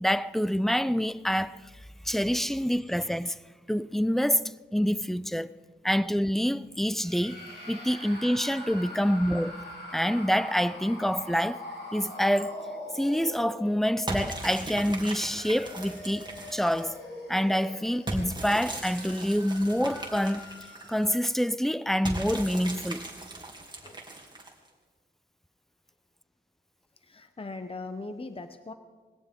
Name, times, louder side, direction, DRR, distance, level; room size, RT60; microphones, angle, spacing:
voice 1, 0.0-1.6 2.0-3.4 3.7-5.5 5.8-7.4 7.7-9.6 9.9-12.7 12.9-17.0 17.3-20.5 20.9-23.1, equal, ahead, 0.4 m, -27 dB
sound 1, 7.0-14.0 14.7-21.3, left 1 dB, 60° left, 4.8 m, -43 dB
voice 2, 8.8-9.1 23.8-24.0 26.9-28.7, left 3 dB, 30° left, 0.8 m, -40 dB
sound 2, 14.1-17.0 18.1-21.1 22.0-24.7, right 1 dB, 25° right, 2.6 m, -38 dB
21.0 x 17.0 x 3.7 m
wide cardioid pair, 90°, 19 cm